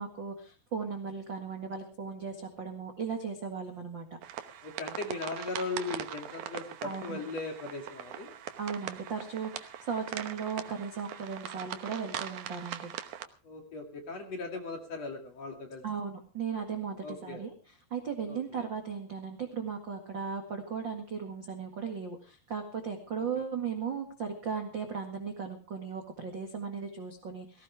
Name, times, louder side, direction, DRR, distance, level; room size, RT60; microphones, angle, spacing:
voice 1, 0.0-4.0 6.8-7.2 8.6-12.9 15.8-17.5 17.9-27.6, right 6 dB, 45° right, 4 dB, 1.6 m, -37 dB
sound 1, 4.2-13.3, right 10 dB, 75° right, 1.8 m, -41 dB
voice 2, 4.6-8.4 13.4-15.8 17.0-17.4 18.3-18.7 23.2-23.4, left 3 dB, 45° left, 3 dB, 3.1 m, -38 dB
18.5 x 16.5 x 3.4 m, 0.36 s
omnidirectional pair, 5.0 m